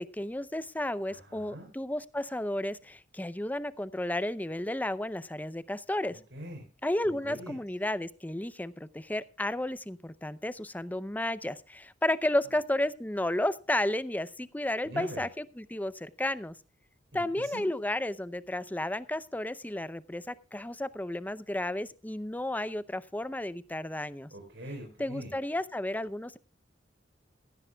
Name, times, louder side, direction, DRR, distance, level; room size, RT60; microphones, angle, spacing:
voice 1, 0.0-6.2 6.8-16.5 17.1-24.3 25.0-26.4, left 1 dB, 10° left, 16 dB, 0.6 m, -32 dB
voice 2, 1.1-1.7 6.3-6.6 7.0-7.5 14.8-15.2 17.1-17.6 24.3-25.3, right 1 dB, 80° right, 1 dB, 4.0 m, -43 dB
17.0 x 15.5 x 2.3 m, 0.34 s
head